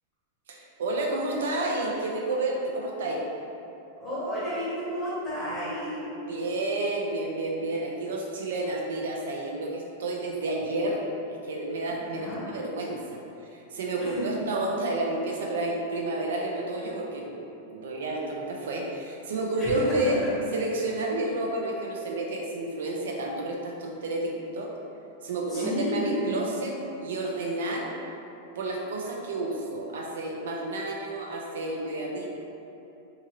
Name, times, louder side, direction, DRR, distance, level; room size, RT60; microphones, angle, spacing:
voice 1, 0.5-3.2 6.2-20.2 20.5-24.7 25.2-28.0 28.6-32.3, right 2 dB, 85° right, -1 dB, 0.5 m, -30 dB
voice 2, 4.0-6.0 12.0-12.4 14.0-14.1 19.6-20.0 25.5-26.4, equal, 5° left, -11 dB, 0.8 m, -32 dB
2.7 x 2.6 x 2.9 m, 2.8 s
supercardioid pair, 175°, 0 cm